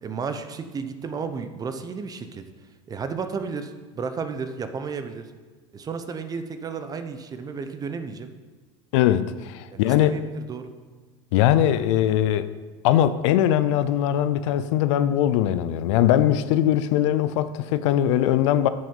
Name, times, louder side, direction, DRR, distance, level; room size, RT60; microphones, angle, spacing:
voice 1, 0.0-2.4 2.9-5.3 5.7-8.3 9.7-10.7, right 5 dB, 25° right, 9 dB, 0.8 m, -33 dB
voice 2, 8.9-10.1 11.3-12.5 12.8-18.7, left 11 dB, 70° left, 13 dB, 0.6 m, -21 dB
9.2 x 6.5 x 5.4 m, 1.4 s
supercardioid pair, 120°, 16 cm